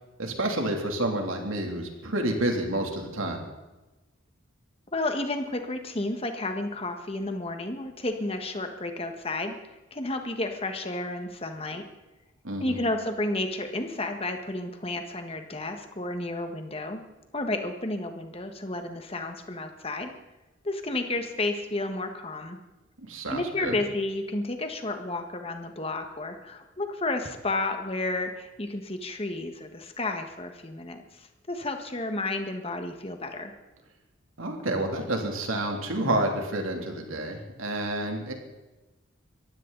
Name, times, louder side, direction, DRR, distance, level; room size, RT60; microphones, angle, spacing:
voice 1, 0.2-3.4 12.4-12.9 23.0-23.8 34.4-38.3, right 1 dB, 85° right, 2 dB, 3.1 m, -29 dB
voice 2, 4.9-9.5 9.9-11.8 12.6-17.0 17.3-20.1 20.6-22.6 23.3-33.5, left 2 dB, 30° left, 6 dB, 1.6 m, -31 dB
22.5 x 15.5 x 4.1 m, 1.1 s
head